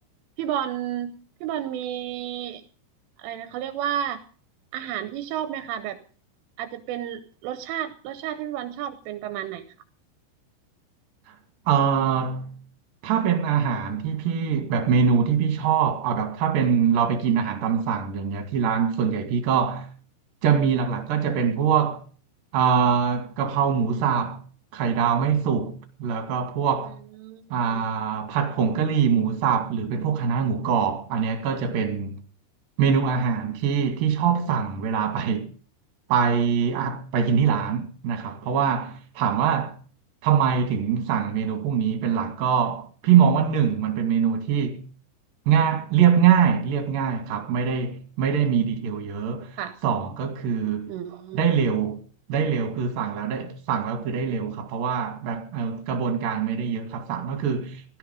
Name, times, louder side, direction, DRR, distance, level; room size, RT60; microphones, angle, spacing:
voice 1, 0.4-2.6 3.2-4.2 4.7-6.0 6.6-9.6 27.2-27.8 49.6-49.7 50.9-51.4, right 10 dB, 80° right, 3.4 m, -31 dB
voice 2, 11.7-12.6 13.0-19.9 20.4-22.0 22.5-24.4 24.7-27.0 27.5-32.2 32.8-35.5 36.1-39.8 40.2-44.8 45.5-50.9 51.3-52.0 52.3-58.0, right 7 dB, 55° right, 3.3 m, -23 dB
16.5 x 14.0 x 5.2 m
omnidirectional pair, 5.8 m